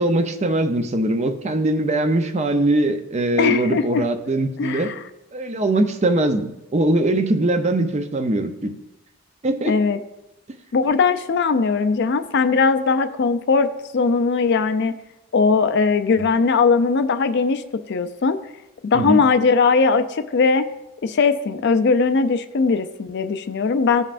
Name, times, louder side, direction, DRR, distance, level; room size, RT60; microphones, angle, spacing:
voice 1, 0.0-4.9 5.3-8.7 9.4-9.8 16.2-16.3 18.9-19.2, right 1 dB, 30° right, 7 dB, 0.5 m, -21 dB
voice 2, 3.4-4.0 4.6-5.0 9.7-10.0 10.7-13.7 13.9-14.9 15.3-17.6 17.9-18.4 18.8-20.7 21.0-24.0, left 4 dB, 50° left, 10 dB, 0.4 m, -19 dB
14.5 x 5.4 x 2.5 m, 0.92 s
head